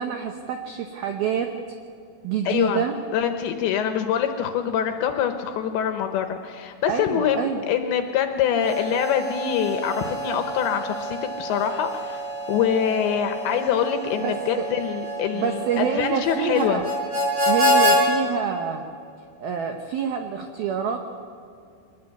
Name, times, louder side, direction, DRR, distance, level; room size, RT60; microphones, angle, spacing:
voice 1, 0.0-1.5 2.2-2.9 6.9-7.6 14.2-14.7 15.3-16.9 17.5-18.8 19.4-21.1, right 7 dB, 80° right, 4 dB, 2.2 m, -27 dB
voice 2, 2.5-2.8 3.1-12.2 12.5-16.8, left 8 dB, 75° left, 6 dB, 2.8 m, -24 dB
Harmonica, 8.5-18.0, equal, 55° right, 8.0 m, -27 dB
24.0 x 20.0 x 8.1 m, 2.3 s
omnidirectional pair, 6.0 m